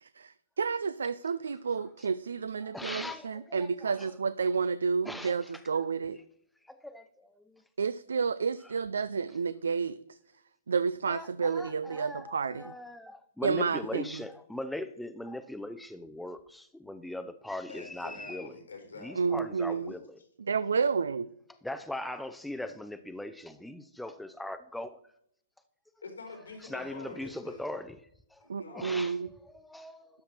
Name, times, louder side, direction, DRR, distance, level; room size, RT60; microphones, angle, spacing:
voice 1, 0.0-6.2 7.8-10.2 10.7-12.7 13.4-14.0 19.2-19.9 20.4-21.3 28.5-29.3, right 5 dB, 80° right, 0.3 m, -30 dB
voice 2, 2.6-4.1 5.0-5.5 6.7-7.6 11.1-18.5 19.0-20.2 21.6-24.9 26.6-28.0 28.3-28.4 28.7-29.2 29.5-30.1, left 1 dB, 5° left, 0.5 m, -40 dB
voice 3, 17.7-19.9 26.0-27.6 28.4-29.0, left 3 dB, 90° left, 3.8 m, -46 dB
12.5 x 5.7 x 4.4 m
hypercardioid pair, 125°, 0 cm